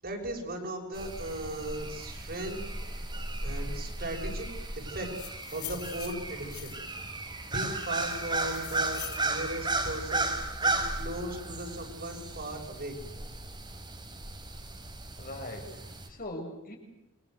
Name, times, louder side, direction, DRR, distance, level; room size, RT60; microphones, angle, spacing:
voice 1, 0.0-2.6 3.4-4.5 4.7-6.8 7.4-13.0, right 1 dB, 45° right, 0 dB, 6.7 m, -37 dB
sound 1, 0.9-16.1, right 2 dB, 20° right, 4.5 m, -35 dB
sound 2, 4.9-7.0 7.6-9.3, left 15 dB, 80° left, 2.3 m, -44 dB
voice 2, 15.2-16.8, left 1 dB, 40° left, 2 dB, 7.2 m, -41 dB
29.0 x 25.0 x 8.0 m, 0.86 s
head